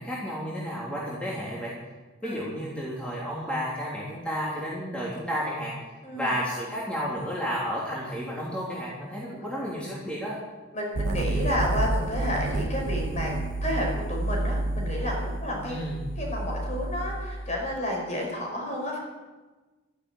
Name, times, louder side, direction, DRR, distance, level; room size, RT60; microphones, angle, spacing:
voice 1, 0.0-1.7 2.2-5.7 6.1-10.4 15.7-16.0, equal, 5° left, -7 dB, 3.4 m, -32 dB
voice 2, 6.0-6.3 9.2-9.3 10.7-13.3 13.6-15.8 16.2-19.0, left 1 dB, 35° left, -1 dB, 5.4 m, -31 dB
sound 1, 10.9-17.7, right 2 dB, 70° right, 0.7 m, -30 dB
13.0 x 11.5 x 9.3 m, 1.2 s
head